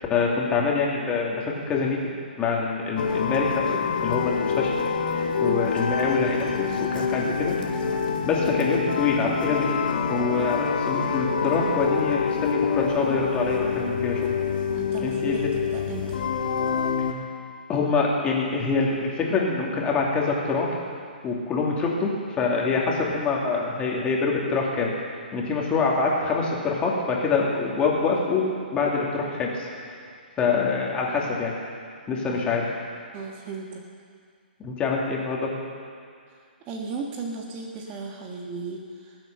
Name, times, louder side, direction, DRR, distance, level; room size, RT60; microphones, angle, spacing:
voice 1, 0.1-2.0 2.4-4.7 5.1-7.5 8.2-14.3 15.0-15.5 17.7-20.8 21.2-24.9 25.3-29.9 30.4-31.6 32.1-32.7 34.6-35.5, left 4 dB, 20° left, -2 dB, 2.6 m, -25 dB
sound 1, 3.0-17.1, left 6 dB, 65° left, 1.8 m, -26 dB
voice 2, 14.6-16.2 32.3-32.6 33.1-33.8 36.7-39.2, right 4 dB, 30° right, 1 dB, 1.5 m, -35 dB
20.0 x 7.9 x 6.8 m, 2.2 s
hypercardioid pair, 135°, 5 cm